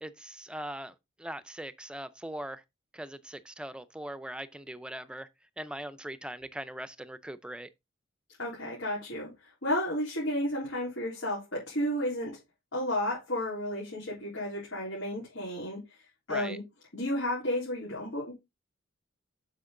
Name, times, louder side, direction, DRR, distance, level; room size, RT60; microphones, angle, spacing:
voice 1, 0.0-0.9 1.2-2.6 2.9-5.3 5.6-7.7 16.3-16.6, right 1 dB, 5° right, 0.5 m, -40 dB
voice 2, 8.4-9.3 9.6-12.4 12.7-15.8 16.3-16.6 16.9-18.3, left 1 dB, 75° left, 3.8 m, -32 dB
8.2 x 6.0 x 3.8 m
head